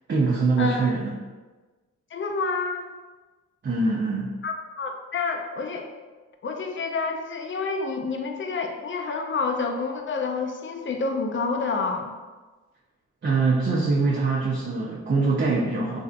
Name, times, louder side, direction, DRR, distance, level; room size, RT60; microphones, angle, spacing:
voice 1, 0.1-1.1 3.6-4.3 13.2-16.0, right 3 dB, 35° right, -4 dB, 0.6 m, -23 dB
voice 2, 2.1-2.9 4.4-5.9 6.4-12.1, left 4 dB, 40° left, 3 dB, 0.5 m, -28 dB
3.3 x 2.6 x 2.4 m, 1.3 s
cardioid pair, 55°, 31 cm